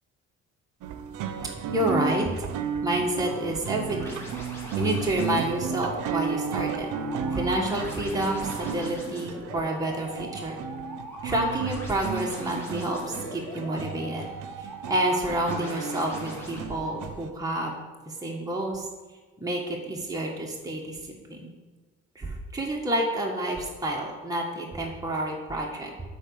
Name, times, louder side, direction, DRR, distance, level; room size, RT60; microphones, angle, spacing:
sound 1, 0.8-17.3, right 6 dB, 85° right, 0.7 m, -34 dB
voice 1, 1.7-2.5 2.8-4.2 4.8-6.9 7.3-10.6 11.2-14.2 14.6-17.7 18.1-18.9 19.4-21.0 21.3-21.5 22.1-25.9, right 1 dB, 10° right, -2 dB, 1.6 m, -29 dB
sound 2, 4.0-16.6, right 1 dB, 10° left, 2.7 m, -41 dB
8.7 x 4.1 x 6.9 m, 1.3 s
cardioid pair, 90°, 30 cm